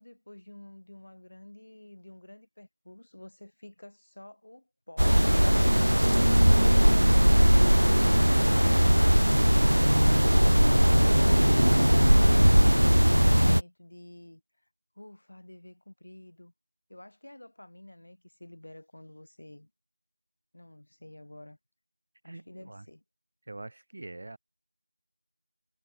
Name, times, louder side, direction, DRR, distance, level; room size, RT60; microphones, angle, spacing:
voice 1, 0.0-5.2 12.4-14.4 14.9-16.5 16.9-19.7 20.5-21.6 22.2-23.0, left 1 dB, 30° left, 3.2 m, -49 dB
sound 1, 5.0-13.6, equal, 75° right, 0.3 m, -20 dB
voice 2, 22.2-22.9 23.5-24.4, right 2 dB, 20° right, 1.4 m, -46 dB
figure-of-eight pair, 175°, 0 cm